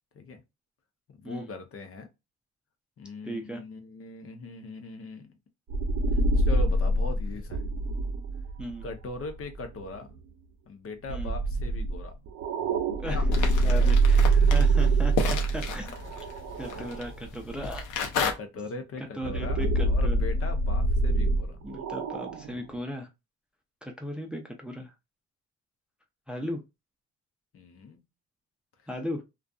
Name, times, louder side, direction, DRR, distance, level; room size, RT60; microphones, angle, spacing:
voice 1, 1.1-2.1 3.0-5.3 6.1-7.6 8.8-10.1 10.7-12.1 13.1-13.2 13.7-13.9 14.2-14.7 16.7-16.9 18.3-21.6 27.5-28.0, left 3 dB, 50° left, 0.7 m, -40 dB
voice 2, 3.2-3.6 8.6-8.8 11.1-11.3 13.0-15.1 15.5-16.0 16.6-17.8 19.0-20.2 21.6-23.1 23.8-24.9 26.3-26.6 28.9-29.2, equal, 5° right, 0.5 m, -37 dB
sound 1, 5.7-9.9 11.1-17.1 17.6-17.7 19.2-22.7, right 2 dB, 65° right, 0.6 m, -25 dB
sound 2, 13.3-18.3, left 5 dB, 80° left, 0.7 m, -33 dB
2.5 x 2.3 x 2.3 m
cardioid pair, 90°, 30 cm